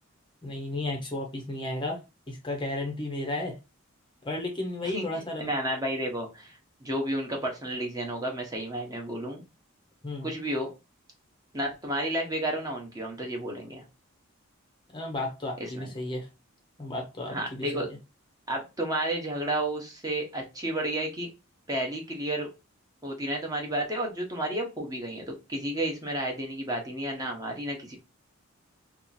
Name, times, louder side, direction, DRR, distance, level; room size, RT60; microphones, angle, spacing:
voice 1, 0.4-2.0 2.3-3.6 4.2-5.5 10.0-10.3 14.9-16.3 16.8-18.0, left 2 dB, 20° left, 0.6 m, -33 dB
voice 2, 5.4-9.4 10.2-10.7 11.5-13.8 15.8-15.9 17.3-17.9 18.5-21.3 21.7-22.5 23.0-28.0, right 1 dB, 15° right, 0.8 m, -31 dB
2.8 x 2.4 x 3.9 m
head